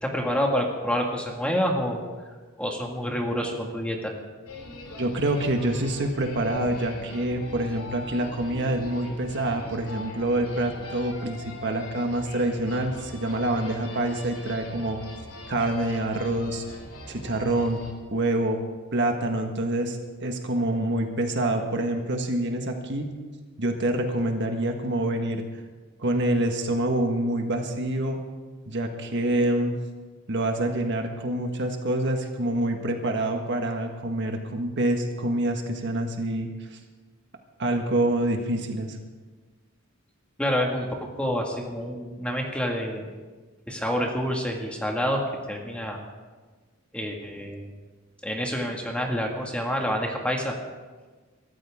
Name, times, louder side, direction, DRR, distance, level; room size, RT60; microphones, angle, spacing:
voice 1, 0.0-2.0 2.6-4.1 40.4-43.1 43.7-46.0 46.9-47.7 48.2-50.5, equal, 5° left, 0 dB, 1.9 m, -28 dB
sound 1, 4.5-17.9, left 2 dB, 85° left, 2.9 m, -41 dB
voice 2, 5.0-15.0 15.5-16.6 17.1-17.8 18.1-18.6 18.9-23.1 23.6-25.4 26.0-28.2 28.7-29.8 30.3-36.8 37.6-39.0, right 1 dB, 55° right, 4 dB, 1.6 m, -26 dB
23.5 x 13.5 x 3.7 m, 1.3 s
head